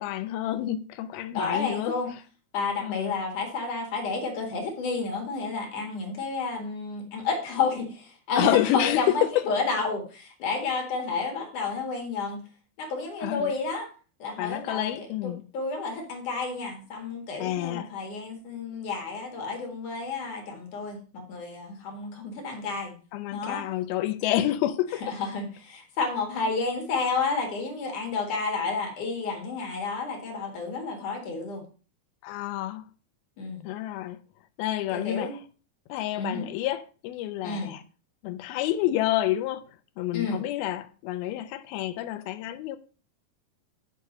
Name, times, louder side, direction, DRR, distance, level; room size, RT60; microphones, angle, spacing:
voice 1, 0.0-2.2 2.8-3.2 8.4-9.0 13.2-13.6 14.4-15.4 17.4-17.9 23.1-25.2 32.2-32.9 33.6-34.2 34.6-35.4 35.9-37.8 38.2-39.7 40.0-42.8, left 13 dB, 80° left, 2.3 m, -29 dB
voice 2, 1.3-2.1 2.5-12.4 12.8-13.9 14.2-23.0 23.3-23.6 25.0-31.6 33.4-33.6 34.9-35.3 36.2-36.5 37.4-37.7 40.1-40.4, left 4 dB, 55° left, 3.0 m, -31 dB
6.6 x 6.6 x 6.5 m
omnidirectional pair, 4.7 m